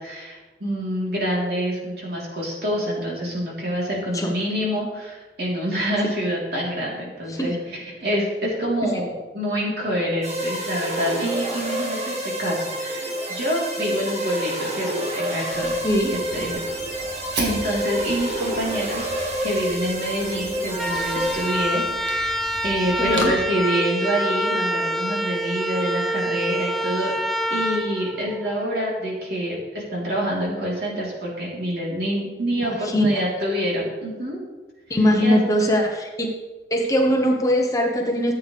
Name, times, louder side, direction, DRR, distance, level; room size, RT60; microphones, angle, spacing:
voice 1, 0.0-15.8 16.1-16.6 17.4-19.1 19.4-27.1 27.5-34.4 34.9-35.4, equal, 60° right, -4 dB, 3.5 m, -27 dB
sound 1, 10.2-22.0, equal, 40° right, 1.9 m, -28 dB
Fire, 15.5-23.3, right 2 dB, 85° right, 1.9 m, -36 dB
voice 2, 15.8-16.1 22.9-23.6 32.6-33.2 34.9-36.3 36.7-38.3, equal, 20° left, 1 dB, 1.0 m, -21 dB
sound 2, 20.7-28.8, equal, ahead, 0.4 m, -26 dB
13.5 x 8.4 x 3.4 m, 1.3 s
head